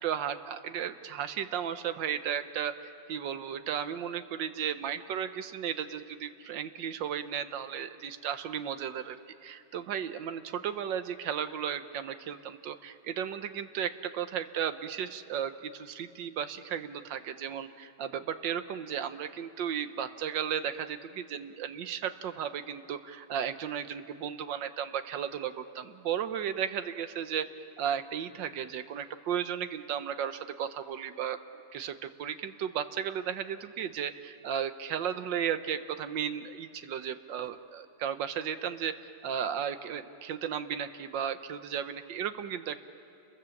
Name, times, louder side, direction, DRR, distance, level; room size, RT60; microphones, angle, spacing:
voice 1, 0.0-9.2 9.4-27.5 27.8-31.4 31.7-42.8, right 8 dB, 85° right, 10 dB, 1.6 m, -34 dB
29.5 x 22.5 x 7.2 m, 2.6 s
omnidirectional pair, 1.9 m